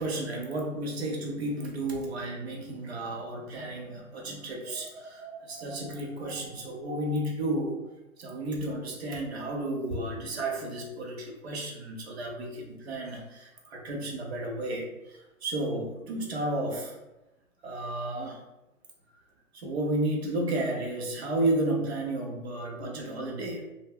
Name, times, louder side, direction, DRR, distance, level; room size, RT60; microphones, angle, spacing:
voice 1, 0.0-7.8 8.2-14.9 15.4-17.0 17.6-18.4 19.5-23.7, right 1 dB, 50° right, 0 dB, 0.7 m, -32 dB
2.2 x 2.0 x 3.5 m, 0.97 s
hypercardioid pair, 155°, 41 cm